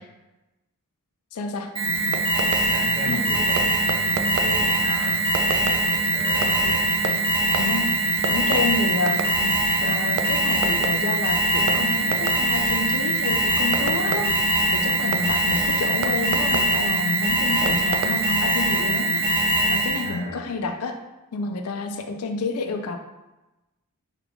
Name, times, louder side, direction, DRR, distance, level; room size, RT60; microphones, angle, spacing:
voice 1, 1.3-1.7 3.0-3.2 7.5-7.9 8.3-21.0 21.3-23.0, left 3 dB, 75° left, 5 dB, 0.4 m, -29 dB
Alarm, 1.7-20.1, right 1 dB, 25° right, 0.9 m, -22 dB
Fireworks, 1.9-18.4, right 5 dB, 80° right, 0.3 m, -34 dB
voice 2, 2.5-5.2 5.6-6.8 15.2-15.5 20.0-20.4, right 1 dB, 40° right, -5 dB, 1.3 m, -36 dB
4.6 x 2.4 x 3.4 m, 1.0 s
head